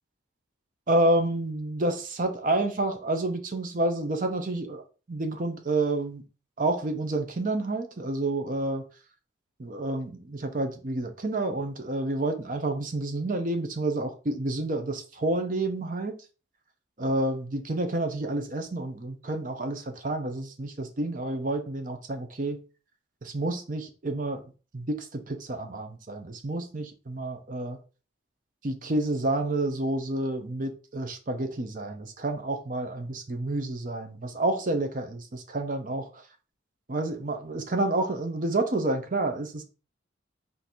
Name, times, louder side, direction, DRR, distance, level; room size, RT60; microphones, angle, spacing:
voice 1, 0.9-4.8 5.1-6.2 6.6-8.8 9.6-16.1 17.0-22.6 23.2-24.4 24.7-27.8 28.6-36.2 36.9-39.6, right 2 dB, 40° right, 0.6 m, -29 dB
3.7 x 2.6 x 4.3 m
head